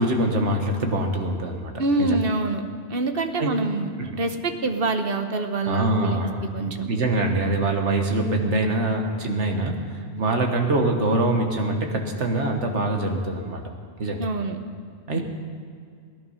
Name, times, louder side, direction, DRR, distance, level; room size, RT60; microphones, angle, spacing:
voice 1, 0.0-1.7 2.0-2.2 3.4-3.5 4.0-4.1 5.7-6.4 6.9-9.8 10.2-13.6 14.0-14.2 15.1-15.2, right 2 dB, 90° right, 3 dB, 1.7 m, -24 dB
voice 2, 1.8-2.6 2.9-6.3 6.5-6.9 10.1-10.3 14.2-14.6 15.1-15.2, right 3 dB, 55° right, 6 dB, 1.2 m, -26 dB
17.5 x 11.0 x 5.7 m, 2.2 s
omnidirectional pair, 1.2 m